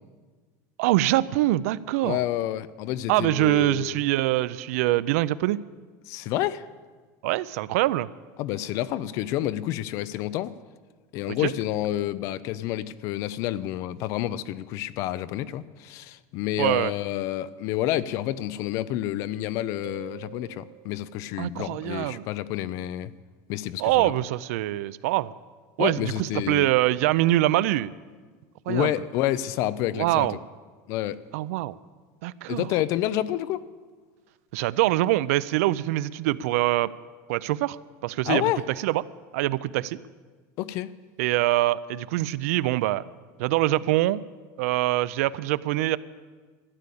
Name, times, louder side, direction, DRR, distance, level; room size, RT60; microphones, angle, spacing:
voice 1, 0.8-2.2 3.1-5.6 7.2-8.1 11.3-11.5 16.6-16.9 21.4-22.3 23.8-25.3 25.8-27.9 28.7-28.9 30.0-30.4 31.3-31.8 32.2-32.7 34.5-36.9 37.3-38.5 38.8-39.0 39.3-40.0 41.2-43.0 43.4-44.2 44.6-46.0, right 16 dB, 70° right, 18 dB, 0.4 m, -24 dB
voice 2, 2.0-4.0 6.1-6.6 8.4-10.5 11.1-23.1 23.5-24.1 25.8-26.7 28.7-30.3 30.9-31.2 32.5-33.6 38.3-38.6 40.6-40.9, left 13 dB, 40° left, 17 dB, 0.4 m, -29 dB
sound 1, 19.8-21.4, right 12 dB, 50° right, 2.6 m, -46 dB
13.0 x 9.7 x 8.4 m, 1.4 s
cardioid pair, 180°, 8 cm